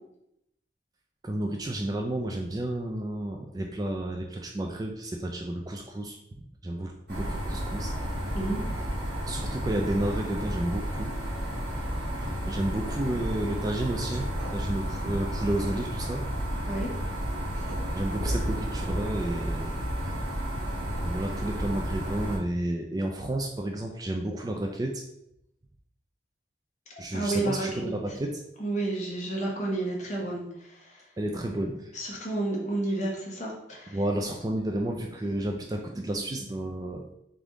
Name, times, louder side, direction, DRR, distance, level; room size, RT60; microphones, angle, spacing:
voice 1, 1.2-7.9 9.3-11.1 12.5-16.2 17.9-19.7 21.0-25.0 27.0-28.4 31.2-32.0 33.9-37.0, right 1 dB, 20° right, 2 dB, 0.3 m, -31 dB
sound 1, 7.1-22.4, equal, 60° right, 1.5 m, -32 dB
voice 2, 27.1-27.9 28.6-31.0 31.9-34.0, right 2 dB, 40° left, -3 dB, 1.2 m, -31 dB
3.7 x 3.5 x 3.7 m, 0.81 s
head